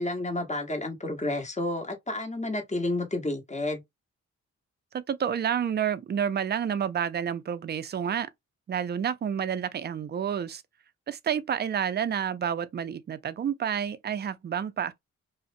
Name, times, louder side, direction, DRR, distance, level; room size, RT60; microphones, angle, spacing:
voice 1, 0.0-3.8, left 2 dB, 20° left, 1.0 m, -30 dB
voice 2, 4.9-8.3 8.7-10.6 11.1-15.0, right 8 dB, 30° right, 0.4 m, -29 dB
2.4 x 2.0 x 2.5 m
cardioid pair, 55°, 33 cm